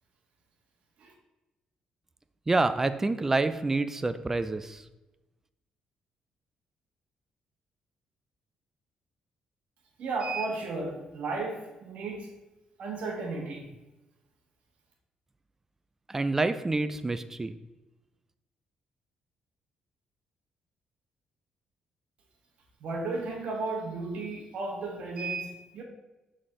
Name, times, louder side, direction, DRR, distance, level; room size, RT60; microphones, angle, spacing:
voice 1, 2.5-4.8 16.1-17.5, right 3 dB, 15° right, 12 dB, 0.4 m, -27 dB
voice 2, 10.0-12.3 12.8-13.7 22.8-25.8, right 3 dB, 65° right, 0 dB, 1.5 m, -34 dB
6.4 x 4.0 x 3.8 m, 1.0 s
cardioid pair, 105°, 2 cm